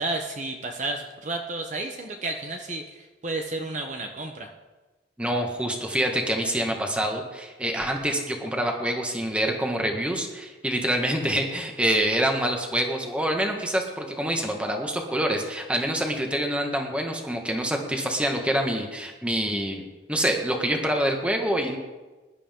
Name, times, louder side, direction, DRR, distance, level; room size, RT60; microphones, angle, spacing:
voice 1, 0.0-4.5, right 2 dB, 40° right, 3 dB, 1.0 m, -32 dB
voice 2, 5.2-19.8 20.1-21.8, right 1 dB, 5° right, 2 dB, 1.6 m, -26 dB
21.0 x 11.5 x 3.7 m, 1.2 s
head